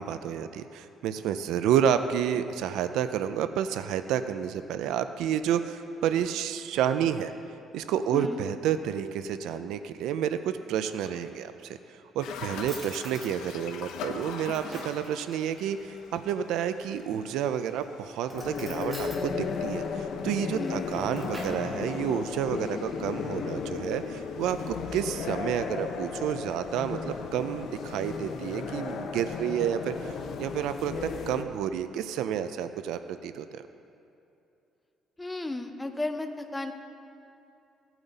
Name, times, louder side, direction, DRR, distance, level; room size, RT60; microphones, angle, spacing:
voice 1, 0.0-7.3 7.7-33.6, right 9 dB, 85° right, 10 dB, 0.5 m, -30 dB
voice 2, 8.1-8.4 20.5-20.9 35.2-36.7, left 2 dB, 10° left, 6 dB, 0.6 m, -34 dB
Drawer open or close, 10.8-11.7 12.3-12.4 12.7-13.3 14.0-15.1 16.9-17.5 18.2-19.2 20.6-21.7, right 1 dB, 20° right, 2.0 m, -45 dB
sound 1, 12.2-29.1, left 6 dB, 90° left, 0.9 m, -46 dB
sound 2, 18.3-31.4, left 5 dB, 50° left, 0.7 m, -35 dB
16.5 x 8.9 x 4.1 m, 2.7 s
cardioid pair, 155°, 0 cm